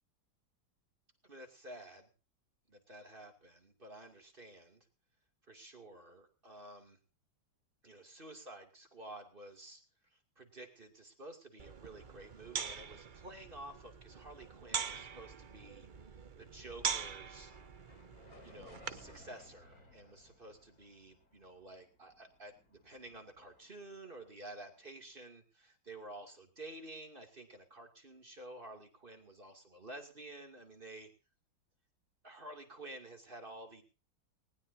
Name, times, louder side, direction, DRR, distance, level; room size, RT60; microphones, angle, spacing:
voice 1, 1.2-2.1 2.7-4.9 5.5-7.0 7.8-17.5 18.4-31.1 32.2-33.8, right 2 dB, 30° right, 4 dB, 2.7 m, -51 dB
sound 1, 11.6-19.2, right 6 dB, 50° right, 0.5 m, -43 dB
sound 2, 16.4-24.8, left 2 dB, 50° left, 3.7 m, -62 dB
19.5 x 19.5 x 2.7 m, 0.34 s
omnidirectional pair, 2.0 m